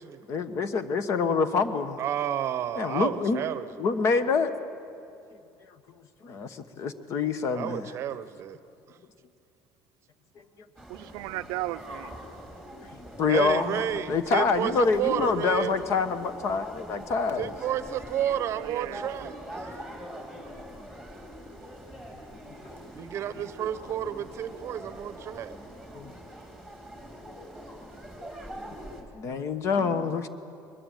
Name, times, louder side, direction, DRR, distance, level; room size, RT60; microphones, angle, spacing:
voice 1, 0.3-2.0 2.7-3.4 3.8-4.5 6.2-7.9 12.9-17.5 22.6-22.7 25.9-26.1 29.1-30.3, left 5 dB, 45° left, 1.2 m, -26 dB
voice 2, 2.0-3.9 7.5-8.6 8.9-9.0 13.3-15.8 17.4-19.8 22.9-25.6, right 10 dB, 40° right, 0.8 m, -31 dB
sound 1, 10.8-29.0, equal, 5° left, 2.9 m, -43 dB
voice 3, 10.9-12.2 18.6-19.3 23.6-23.7 29.7-30.1, right 17 dB, 80° right, 0.5 m, -37 dB
22.5 x 20.5 x 9.1 m
cardioid pair, 165°, 7 cm